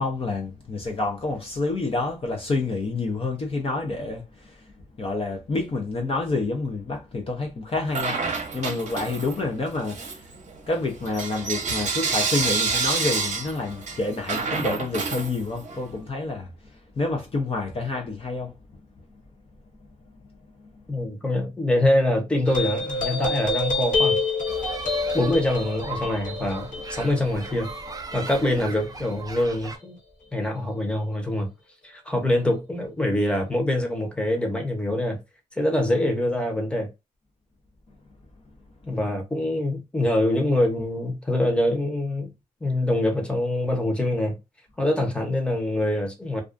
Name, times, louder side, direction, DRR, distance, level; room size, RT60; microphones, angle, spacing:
voice 1, 0.0-4.7 5.0-10.3 10.7-16.5 17.0-18.5 20.6-20.7 38.9-39.0, left 3 dB, 40° left, 0.6 m, -28 dB
Bell / Coin (dropping), 7.9-9.5 9.8-15.8, right 4 dB, 55° right, 0.8 m, -28 dB
voice 2, 20.9-24.2 25.1-27.7 28.1-30.0 30.3-31.5 31.8-35.2 35.5-36.9 38.9-42.3 42.6-44.4 44.8-46.4, left 1 dB, 5° left, 0.8 m, -24 dB
sound 1, 22.5-29.3, left 3 dB, 65° left, 0.9 m, -28 dB
sound 2, 24.5-29.8, right 3 dB, 25° right, 0.5 m, -38 dB
2.4 x 2.3 x 2.4 m
cardioid pair, 85°, 15 cm